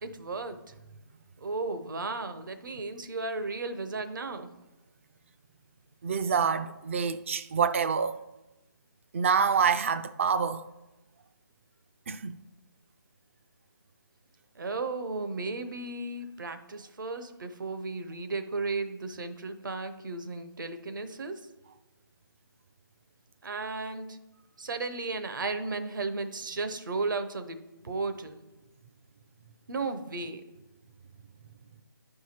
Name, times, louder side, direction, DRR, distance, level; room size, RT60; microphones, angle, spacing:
voice 1, 0.0-0.6 1.4-4.5 14.6-21.4 23.4-24.2 24.6-27.6 27.8-28.4 29.7-30.4, right 3 dB, 60° right, 0.8 m, -34 dB
voice 2, 6.0-8.2 9.1-10.7 12.1-12.4, right 6 dB, 35° right, 0.4 m, -27 dB
9.2 x 4.8 x 4.3 m
figure-of-eight pair, 150°, 12 cm